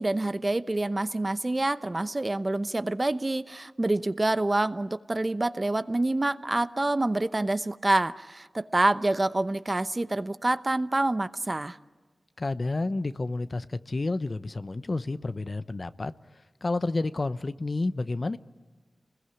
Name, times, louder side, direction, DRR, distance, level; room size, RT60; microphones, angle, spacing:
voice 1, 0.0-11.8, right 2 dB, 35° right, 0.9 m, -27 dB
voice 2, 12.4-16.1 16.6-18.4, left 2 dB, 50° left, 0.8 m, -30 dB
29.0 x 21.0 x 9.7 m
cardioid pair, 45°, 0 cm